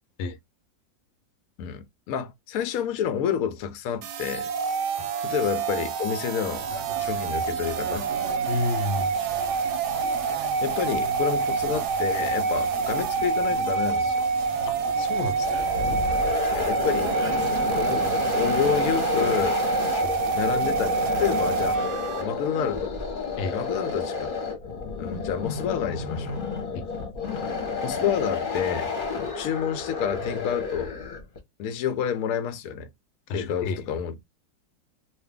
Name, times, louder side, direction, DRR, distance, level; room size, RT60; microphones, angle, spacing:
voice 1, 1.6-4.5 5.2-6.6 7.0-8.1 10.3-14.2 16.5-17.2 17.7-19.6 20.3-20.9 21.2-22.9 23.5-24.3 25.0-26.4 27.4-27.5 27.8-28.9 29.3-30.9 31.6-32.9 33.3-34.1, left 8 dB, 65° left, 0.9 m, -29 dB
sound 1, 4.0-22.2, right 5 dB, 70° right, 1.1 m, -26 dB
sound 2, 6.5-18.9, right 4 dB, 50° right, 1.0 m, -41 dB
voice 2, 8.5-9.1 14.7-15.7 20.0-20.2 23.4-23.5 26.7-26.8 33.3-33.9, left 3 dB, 90° left, 1.3 m, -31 dB
sound 3, 15.3-31.4, left 4 dB, 35° left, 1.0 m, -31 dB
2.6 x 2.6 x 3.5 m
omnidirectional pair, 2.0 m